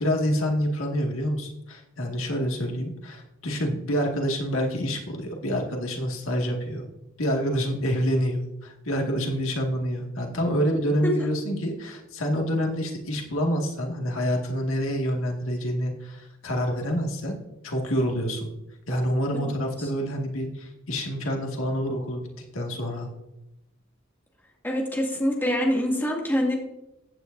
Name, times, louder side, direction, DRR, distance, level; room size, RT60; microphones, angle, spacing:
voice 1, 0.0-6.8 7.2-17.4 17.6-18.5 18.9-22.2 22.5-23.1, equal, 75° left, 1 dB, 2.0 m, -27 dB
voice 2, 24.6-26.6, equal, 10° left, -2 dB, 2.3 m, -25 dB
15.0 x 9.5 x 2.7 m, 0.92 s
head